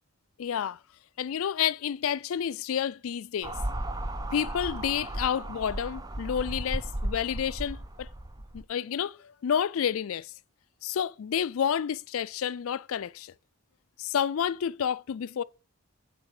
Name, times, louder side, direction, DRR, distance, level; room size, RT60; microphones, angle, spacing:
voice 1, 0.4-0.8 1.2-3.5 4.3-8.1 8.5-10.3 10.8-13.3 14.0-15.4, left 8 dB, 70° left, 0.4 m, -30 dB
sound 1, 3.4-8.6, right 1 dB, 15° right, 0.5 m, -35 dB
9.3 x 4.0 x 6.5 m
head